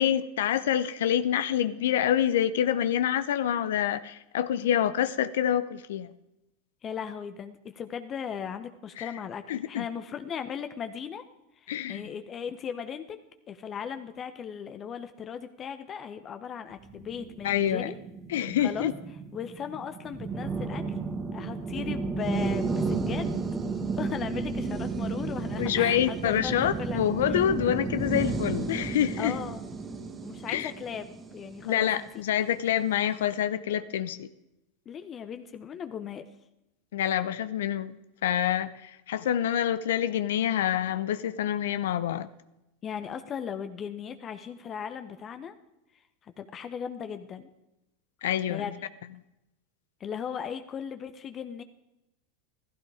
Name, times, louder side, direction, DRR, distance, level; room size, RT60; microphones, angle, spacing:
voice 1, 0.0-6.1 9.0-9.1 9.5-9.8 11.7-12.0 17.4-17.9 18.3-18.9 25.6-29.4 30.5-30.7 31.6-34.3 36.9-37.9 38.2-42.3 48.2-48.6, left 10 dB, 80° left, 13 dB, 0.7 m, -27 dB
voice 2, 6.8-11.2 11.6-13.2 13.5-18.0 18.3-18.9 19.3-20.8 21.3-23.4 23.9-27.4 29.2-29.6 30.2-32.1 34.9-36.3 42.8-45.5 46.2-47.5 48.5-48.8 50.0-51.6, left 7 dB, 35° left, 9 dB, 1.0 m, -37 dB
sound 1, 16.9-32.3, right 4 dB, 25° right, 1.5 m, -33 dB
15.0 x 13.5 x 4.9 m, 0.91 s
hypercardioid pair, 105°, 0 cm